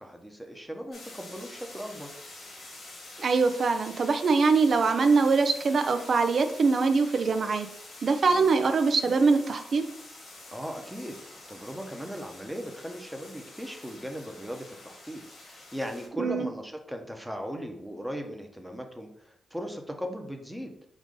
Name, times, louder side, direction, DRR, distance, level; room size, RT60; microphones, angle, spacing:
voice 1, 0.0-2.1 8.3-8.5 10.5-20.7, equal, 5° right, 3 dB, 0.8 m, -38 dB
sound 1, 0.9-16.1, left 2 dB, 75° left, 1.7 m, -47 dB
voice 2, 3.2-7.7 8.0-9.8 16.2-16.5, right 4 dB, 60° right, 8 dB, 0.5 m, -23 dB
5.0 x 2.6 x 3.8 m, 0.72 s
cardioid pair, 60°, 0 cm